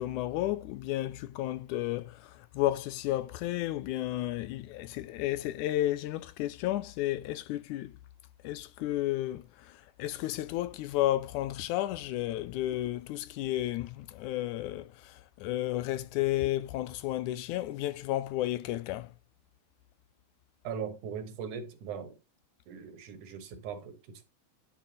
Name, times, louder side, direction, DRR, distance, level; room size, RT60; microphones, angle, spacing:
voice 1, 0.0-8.0 8.4-19.1, left 15 dB, 85° left, 2.0 m, -32 dB
voice 2, 20.6-22.2 22.7-24.2, right 7 dB, 80° right, 2.8 m, -40 dB
10.5 x 4.5 x 4.1 m
omnidirectional pair, 3.5 m